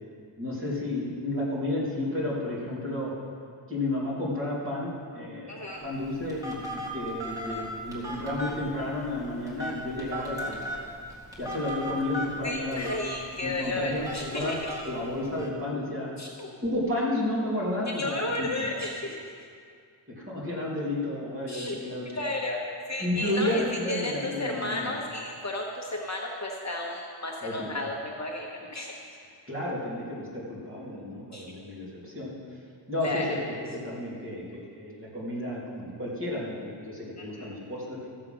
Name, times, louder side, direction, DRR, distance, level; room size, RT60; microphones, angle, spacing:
voice 1, 0.4-3.1 3.7-10.6 11.4-12.9 13.4-14.6 14.8-16.1 16.6-18.5 20.1-22.2 23.0-25.0 27.4-27.7 29.5-32.6 32.9-33.4 33.7-38.1, left 1 dB, 25° right, -7 dB, 3.1 m, -32 dB
voice 2, 5.5-5.8 12.4-14.6 16.2-16.5 18.0-19.5 21.5-21.8 22.0-23.6 23.9-28.9 31.3-31.4 33.0-33.3 37.2-37.6, left 2 dB, 35° left, -1 dB, 1.0 m, -33 dB
Telephone, 5.7-15.5, equal, 5° right, 2.1 m, -38 dB
14.5 x 7.4 x 5.9 m, 2.3 s
wide cardioid pair, 165°, 48 cm